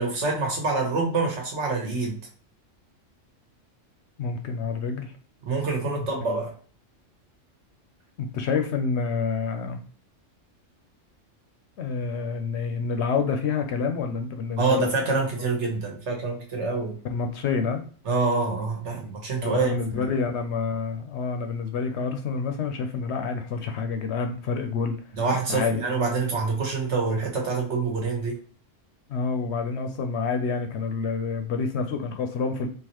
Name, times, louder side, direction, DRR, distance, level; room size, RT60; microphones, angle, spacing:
voice 1, 0.0-2.2 5.5-6.5 14.6-17.0 18.0-20.1 25.1-28.4, right 4 dB, 65° right, 0 dB, 1.3 m, -26 dB
voice 2, 4.2-5.1 5.8-6.1 8.2-9.8 11.8-14.9 17.1-17.8 19.4-25.0 25.5-25.8 29.1-32.7, left 5 dB, 70° left, 6 dB, 0.8 m, -28 dB
3.8 x 2.7 x 2.9 m, 0.43 s
omnidirectional pair, 1.3 m